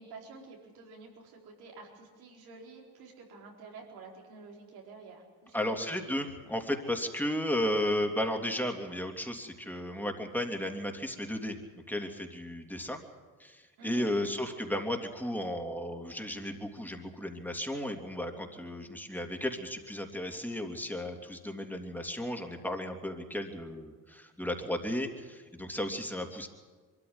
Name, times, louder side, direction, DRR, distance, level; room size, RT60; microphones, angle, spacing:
voice 1, 0.0-5.9 7.6-7.7 13.8-14.5, right 4 dB, 85° right, 0 dB, 4.3 m, -49 dB
voice 2, 5.5-13.0 13.4-26.5, left 1 dB, 5° left, 3 dB, 3.1 m, -34 dB
23.0 x 14.0 x 9.7 m, 1.5 s
supercardioid pair, 60°, 37 cm